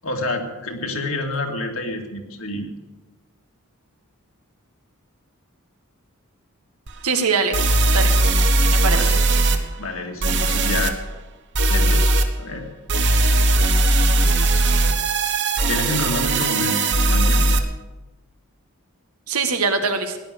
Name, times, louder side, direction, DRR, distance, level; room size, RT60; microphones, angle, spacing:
voice 1, 0.0-2.6 8.9-9.2 9.8-11.0 11.7-12.1 12.4-12.7 15.7-17.6, left 2 dB, 65° left, 2 dB, 2.3 m, -28 dB
sound 1, 6.9-7.0 7.5-9.6 10.2-10.9 11.5-12.3 12.9-17.6, right 2 dB, 55° right, 1.3 m, -18 dB
voice 2, 7.0-7.6 7.9-8.1 8.7-9.1 19.3-20.2, right 4 dB, 90° right, 6 dB, 1.8 m, -22 dB
16.5 x 11.0 x 6.7 m, 1.1 s
head